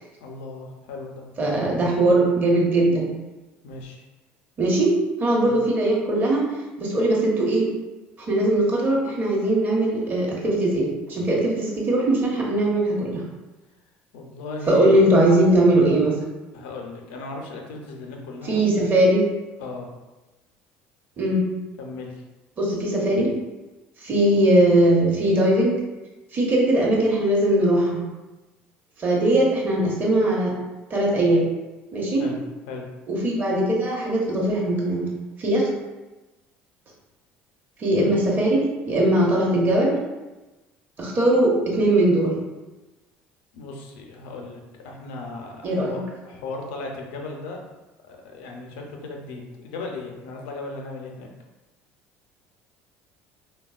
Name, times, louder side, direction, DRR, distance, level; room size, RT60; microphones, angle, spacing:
voice 1, 0.2-1.2 3.6-4.0 5.4-5.5 14.1-15.0 16.5-18.6 19.6-19.9 21.8-22.2 32.2-32.4 32.7-32.8 43.5-46.0 46.2-47.6 48.0-51.3, left 3 dB, 85° left, 1 dB, 0.5 m, -36 dB
voice 2, 1.4-3.1 4.6-4.9 5.2-6.5 6.8-7.7 8.3-13.2 14.7-16.1 18.4-19.2 21.2-21.4 22.6-23.3 24.0-25.8 26.3-28.0 29.0-30.5 30.9-31.4 31.9-32.3 33.1-35.1 35.4-35.6 37.8-38.6 38.9-39.9 41.0-42.3 45.6-46.0, right 1 dB, 40° right, -3 dB, 0.9 m, -20 dB
3.4 x 2.2 x 2.3 m, 1.1 s
supercardioid pair, 90°, 5 cm